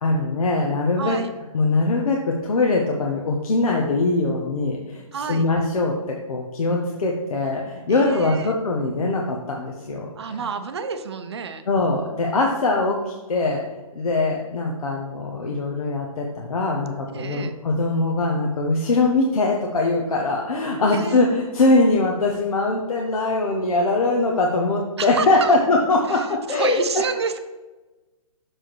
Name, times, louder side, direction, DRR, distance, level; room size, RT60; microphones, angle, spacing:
voice 1, 0.0-1.2 1.5-5.0 5.3-10.4 11.7-13.6 13.9-26.8, left 2 dB, 75° left, -1 dB, 1.2 m, -22 dB
voice 2, 1.0-1.3 5.1-5.5 7.9-8.5 10.2-11.6 17.1-17.5 20.9-21.2 25.0-25.5 26.1-27.4, right 5 dB, 45° right, 8 dB, 0.7 m, -29 dB
6.7 x 4.7 x 4.6 m, 1.2 s
hypercardioid pair, 180°, 19 cm